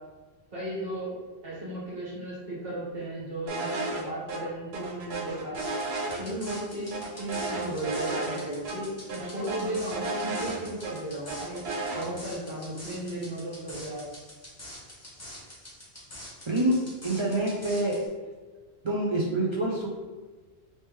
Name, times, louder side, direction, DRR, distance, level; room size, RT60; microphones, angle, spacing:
voice 1, 0.5-1.1 1.4-5.6 6.2-11.6 11.9-14.0, right 1 dB, 65° right, -8 dB, 1.5 m, -35 dB
sound 1, 3.5-4.0 4.3-4.4 4.7-6.6 6.9-8.4 8.6-8.8 9.1-10.9 11.3-12.0, right 3 dB, 85° right, 0.9 m, -33 dB
sound 2, 5.6-18.1, left 1 dB, 15° left, 0.8 m, -45 dB
voice 2, 16.5-18.0 18.8-19.9, right 1 dB, 50° right, -5 dB, 0.3 m, -26 dB
3.3 x 2.8 x 3.1 m, 1.3 s
omnidirectional pair, 1.1 m